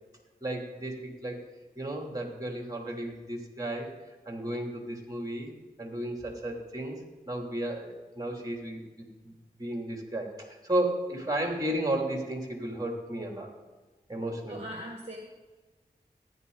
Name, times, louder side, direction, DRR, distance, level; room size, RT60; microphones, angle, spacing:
voice 1, 0.4-1.4 1.7-5.5 5.8-7.0 7.3-8.9 9.2-13.5 14.1-14.6, right 1 dB, 20° right, 1 dB, 3.2 m, -33 dB
voice 2, 14.5-15.3, equal, 35° right, 1 dB, 1.9 m, -40 dB
15.0 x 10.5 x 4.1 m, 1.2 s
cardioid pair, 45°, 17 cm